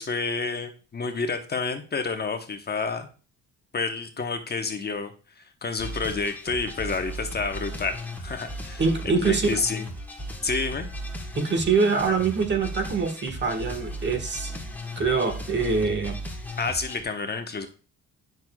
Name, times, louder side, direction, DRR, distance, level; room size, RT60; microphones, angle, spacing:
voice 1, 0.0-3.1 3.7-9.9 10.4-10.9 16.6-17.7, left 4 dB, 35° left, 6 dB, 1.0 m, -29 dB
sound 1, 5.8-17.0, equal, 5° left, 1.4 m, -36 dB
voice 2, 8.8-9.6 11.4-14.5 15.0-16.2, right 4 dB, 35° right, 7 dB, 1.4 m, -24 dB
9.1 x 6.1 x 2.3 m, 0.36 s
cardioid pair, 90°, 30 cm